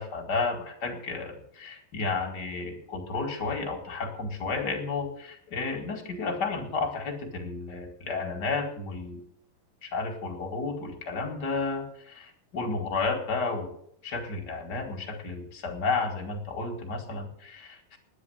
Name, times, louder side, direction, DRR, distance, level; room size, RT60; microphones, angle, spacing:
voice 1, 0.0-9.2 9.8-13.7 14.0-18.0, left 4 dB, 35° left, 2 dB, 2.0 m, -32 dB
9.8 x 9.8 x 9.4 m, 0.69 s
omnidirectional pair, 4.2 m